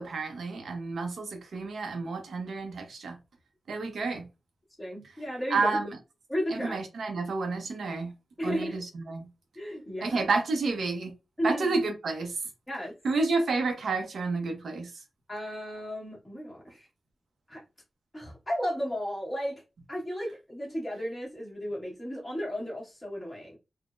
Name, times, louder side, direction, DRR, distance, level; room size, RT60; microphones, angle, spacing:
voice 1, 0.0-3.2 3.7-4.3 5.5-6.0 6.5-8.1 8.4-9.3 10.0-11.1 11.4-12.3 13.0-14.9, right 3 dB, 80° right, 0.6 m, -30 dB
voice 2, 4.8-5.8 6.3-6.8 8.4-8.8 9.5-10.3 11.4-11.7 12.7-12.9 15.3-16.9 17.5-17.6 18.1-19.6 19.9-23.6, equal, 15° left, 1.4 m, -34 dB
3.6 x 2.1 x 2.4 m
wide cardioid pair, 150°, 0 cm